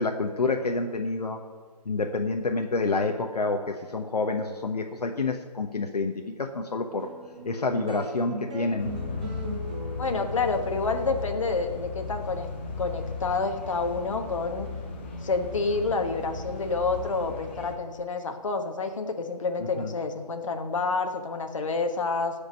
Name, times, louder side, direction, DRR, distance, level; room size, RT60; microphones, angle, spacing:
voice 1, 0.0-1.4 1.8-7.1 7.4-8.9 19.6-19.9, left 3 dB, 70° left, 3 dB, 1.1 m, -28 dB
sound 1, 7.0-13.6, right 2 dB, 10° right, 0.5 m, -40 dB
sound 2, 8.8-17.8, left 4 dB, 15° left, 0.8 m, -36 dB
voice 2, 10.0-12.5 12.8-14.7 15.2-22.3, left 4 dB, 50° left, 4 dB, 1.3 m, -28 dB
15.5 x 5.1 x 7.5 m, 1.5 s
figure-of-eight pair, 165°, 21 cm